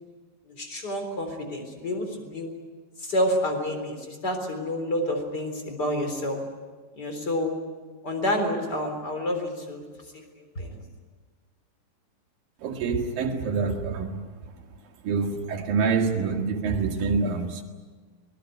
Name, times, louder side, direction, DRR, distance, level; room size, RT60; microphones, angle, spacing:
voice 1, 0.5-2.5 3.0-6.4 7.0-7.5 8.0-9.8 10.4-10.8, left 1 dB, 30° left, 4.1 m, -29 dB
voice 2, 12.6-14.2 15.1-17.6, right 5 dB, 80° right, 3.7 m, -26 dB
24.5 x 20.0 x 9.1 m
omnidirectional pair, 4.0 m